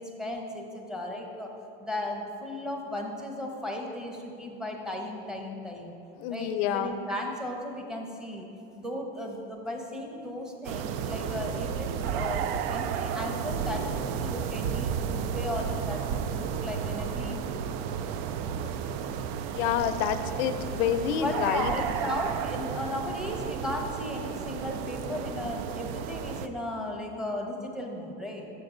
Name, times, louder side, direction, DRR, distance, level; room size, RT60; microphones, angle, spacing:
voice 1, 0.0-1.5 1.8-6.0 6.3-8.5 8.7-17.6 21.2-28.5, left 1 dB, ahead, 0 dB, 0.8 m, -36 dB
voice 2, 6.2-7.0 19.5-21.7, left 9 dB, 75° left, 10 dB, 0.5 m, -28 dB
sound 1, 10.6-26.5, right 7 dB, 70° right, 0.4 m, -32 dB
6.6 x 6.1 x 3.8 m, 2.6 s
supercardioid pair, 120°, 31 cm